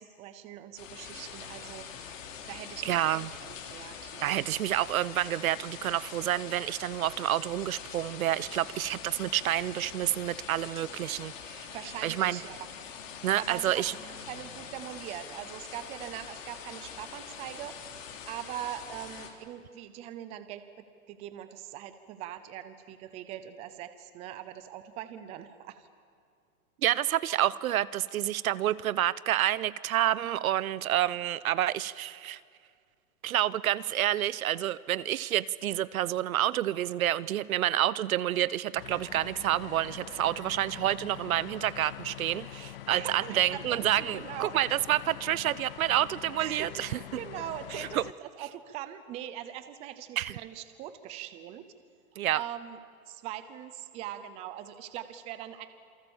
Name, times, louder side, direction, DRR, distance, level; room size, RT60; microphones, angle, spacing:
voice 1, 0.0-2.0 2.5-4.4 11.7-12.6 13.4-17.8 18.3-25.9 42.9-44.6 46.3-46.7 47.1-51.7 52.3-52.8 53.1-55.7, right 12 dB, 15° right, 11 dB, 0.6 m, -41 dB
sound 1, 0.8-19.3, left 7 dB, 60° left, 3.6 m, -44 dB
voice 2, 2.8-3.3 4.2-11.7 12.0-12.4 13.2-13.9 26.8-32.4 33.2-47.0 47.8-48.0 50.2-50.4 52.2-52.4, right 13 dB, 70° right, 19 dB, 0.9 m, -29 dB
sound 2, 38.8-48.1, left 13 dB, 40° left, 0.5 m, -45 dB
28.0 x 23.5 x 7.2 m, 2.2 s
hypercardioid pair, 160°, 44 cm